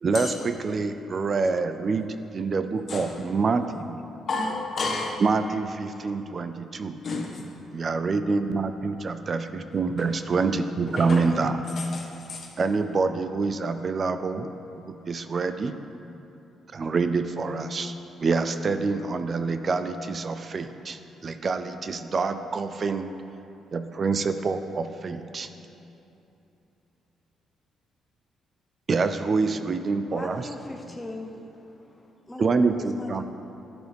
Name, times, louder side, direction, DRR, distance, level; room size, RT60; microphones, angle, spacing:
voice 1, 0.0-4.0 5.2-7.0 7.7-11.6 12.6-14.5 14.9-15.8 16.7-23.1 23.7-25.5 28.9-30.5 32.4-33.2, right 4 dB, 40° right, 10 dB, 0.4 m, -26 dB
voice 2, 4.3-5.2 7.0-7.5 10.9-11.4 11.8-12.5, left 3 dB, 50° left, -1 dB, 1.6 m, -31 dB
voice 3, 30.1-32.7 33.0-33.2, left 2 dB, 15° left, 1 dB, 0.7 m, -40 dB
10.5 x 10.5 x 3.5 m, 2.9 s
cardioid pair, 90°, 0 cm